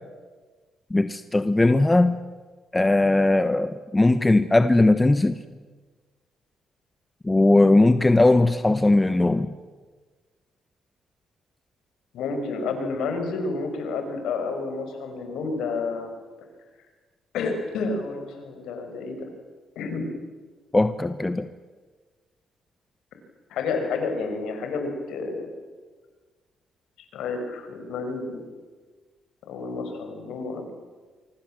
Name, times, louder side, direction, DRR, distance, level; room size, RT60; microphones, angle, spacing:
voice 1, 0.9-2.2 2.7-5.4 7.2-9.5 20.7-21.5, left 2 dB, 15° left, 10 dB, 1.1 m, -19 dB
voice 2, 12.1-16.1 17.3-19.3 19.8-20.1 23.5-25.5 27.1-28.4 29.5-30.7, left 4 dB, 85° left, 6 dB, 5.7 m, -30 dB
25.0 x 24.5 x 7.7 m, 1.4 s
cardioid pair, 90°, 0 cm